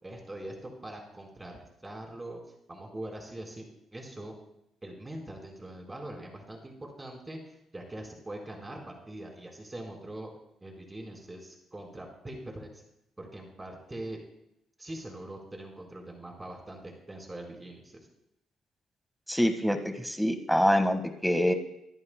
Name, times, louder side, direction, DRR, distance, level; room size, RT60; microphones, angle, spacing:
voice 1, 0.0-2.4 2.7-3.7 3.9-4.4 4.8-10.3 10.6-12.8 13.2-14.2 14.8-18.1, right 1 dB, 20° right, 0 dB, 4.2 m, -42 dB
voice 2, 19.3-21.5, equal, ahead, 6 dB, 1.6 m, -25 dB
24.0 x 11.0 x 2.2 m, 0.82 s
cardioid pair, 75°, 0 cm